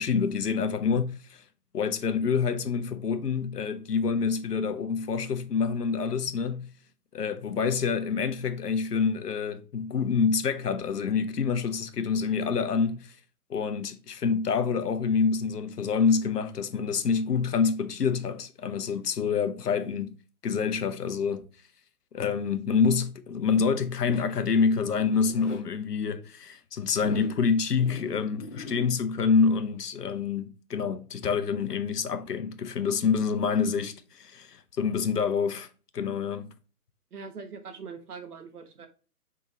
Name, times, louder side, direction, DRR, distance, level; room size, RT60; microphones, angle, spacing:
voice 1, 0.0-1.4 1.7-6.7 7.1-13.2 13.5-20.2 20.4-21.5 22.1-35.7 35.9-36.5, left 5 dB, 90° left, 0.8 m, -27 dB
Zipper (clothing), 24.0-25.6 26.9-27.4 27.8-28.9, left 3 dB, 50° left, 0.9 m, -42 dB
voice 2, 37.1-38.9, right 5 dB, 75° right, 1.1 m, -42 dB
4.8 x 3.5 x 3.0 m
hypercardioid pair, 150°, 46 cm